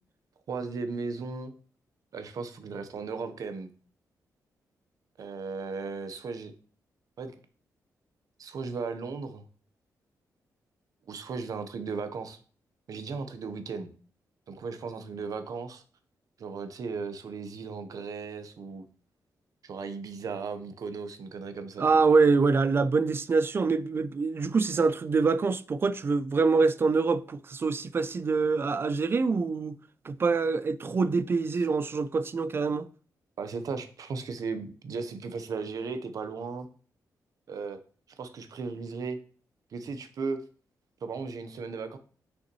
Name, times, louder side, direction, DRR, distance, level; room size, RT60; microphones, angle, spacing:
voice 1, 0.5-1.5 2.1-3.7 5.2-6.5 7.2-7.3 8.4-9.4 11.1-12.4 12.9-13.9 14.5-15.8 16.4-18.8 19.6-22.0 33.4-36.7 37.5-37.8 38.2-39.2 39.7-40.4 41.0-42.0, right 4 dB, 60° right, 0.9 m, -36 dB
voice 2, 21.8-29.8 30.0-32.9, right 4 dB, 35° right, 0.4 m, -25 dB
6.7 x 5.6 x 3.0 m
wide cardioid pair, 125°, 7 cm